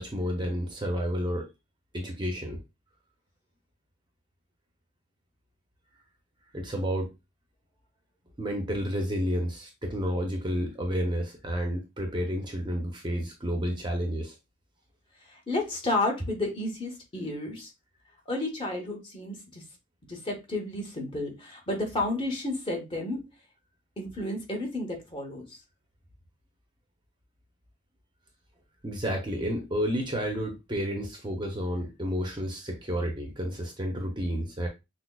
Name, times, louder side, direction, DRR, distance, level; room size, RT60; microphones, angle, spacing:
voice 1, 0.0-1.5 1.9-2.6 6.5-7.1 8.4-14.3 28.8-34.7, equal, 20° right, 2 dB, 0.6 m, -30 dB
voice 2, 15.2-17.7 18.3-19.6 20.1-23.3 24.0-25.6, left 2 dB, 25° left, 2 dB, 0.9 m, -32 dB
5.9 x 2.0 x 2.2 m, 0.23 s
head